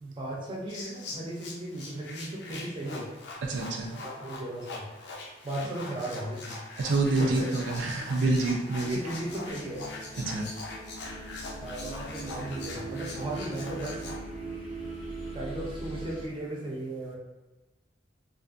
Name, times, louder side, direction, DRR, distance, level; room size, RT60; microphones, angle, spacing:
voice 1, 0.0-3.1 4.0-4.9 5.4-6.6 7.2-7.5 8.8-9.9 11.6-14.0 15.3-17.2, right 1 dB, 25° right, -4 dB, 0.5 m, -36 dB
sound 1, 0.7-14.2, left 3 dB, 65° left, 0.5 m, -42 dB
voice 2, 3.4-4.0 6.8-9.0 10.3-10.5, right 3 dB, 80° right, 0 dB, 0.4 m, -27 dB
sound 2, 8.4-16.3, right 2 dB, 30° left, 0.7 m, -41 dB
2.6 x 2.4 x 2.5 m, 1.1 s
head